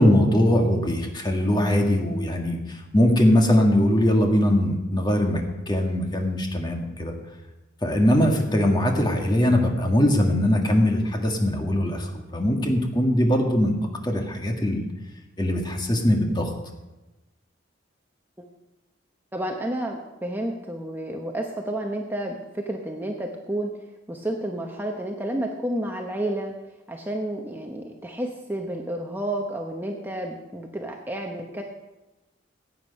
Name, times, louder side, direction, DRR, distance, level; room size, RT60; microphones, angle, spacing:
voice 1, 0.0-7.1 7.8-13.7 14.0-14.9 15.4-16.5, left 1 dB, 20° left, 2 dB, 1.6 m, -21 dB
voice 2, 19.3-23.7 24.1-26.5 26.9-31.6, right 1 dB, 10° right, 2 dB, 0.8 m, -30 dB
15.5 x 9.0 x 5.3 m, 1.1 s
head